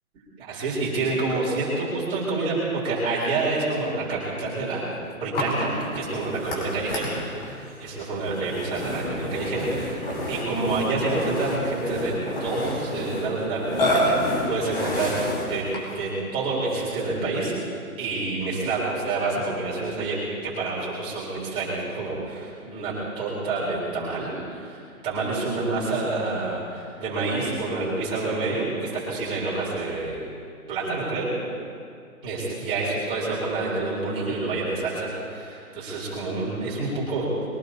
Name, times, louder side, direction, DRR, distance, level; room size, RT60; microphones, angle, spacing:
voice 1, 0.4-4.9 5.2-12.1 12.4-15.2 15.5-17.5 18.0-24.8 25.0-30.2 30.7-31.3 32.2-37.3, right 3 dB, 10° right, -7 dB, 4.0 m, -28 dB
Burping eructation, 5.3-16.0, left 1 dB, 40° left, 5.1 m, -29 dB
23.0 x 18.5 x 2.9 m, 2.3 s
hypercardioid pair, 160°, 44 cm